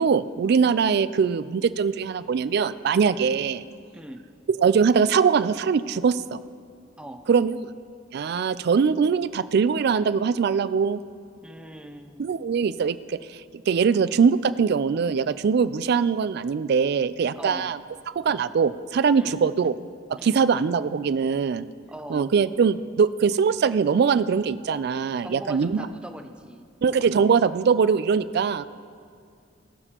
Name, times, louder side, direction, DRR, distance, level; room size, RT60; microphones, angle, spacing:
voice 1, 0.0-3.6 4.5-6.4 7.3-7.7 8.1-11.0 12.2-13.2 13.7-17.8 18.2-19.7 20.1-21.7 22.1-25.9 26.8-28.7, right 6 dB, 55° right, 15 dB, 0.3 m, -22 dB
voice 2, 3.9-4.2 7.0-7.3 11.4-12.3 17.4-17.7 19.1-19.4 20.2-20.4 21.9-22.3 25.2-26.7, right 1 dB, 5° right, 6 dB, 0.5 m, -40 dB
20.5 x 7.0 x 2.9 m, 2.3 s
head